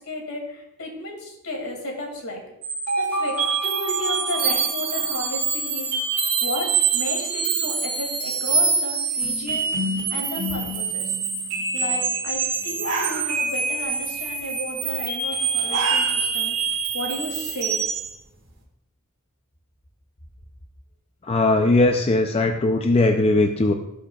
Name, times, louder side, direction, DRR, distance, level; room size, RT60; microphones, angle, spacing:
voice 1, 0.1-2.4 3.0-5.9 6.4-9.7 10.1-11.1 11.7-16.6 16.9-17.8, left 1 dB, 75° left, 1 dB, 2.4 m, -33 dB
sound 1, 2.6-18.1, right 5 dB, 80° right, 2.3 m, -25 dB
sound 2, 12.3-12.4 12.7-13.7 14.0-14.4 15.4-16.4 16.8-16.9 17.5-18.5, right 2 dB, 50° right, 1.8 m, -30 dB
voice 2, 21.2-23.7, left 2 dB, 25° left, 4 dB, 0.5 m, -19 dB
16.5 x 6.5 x 2.4 m, 0.86 s
head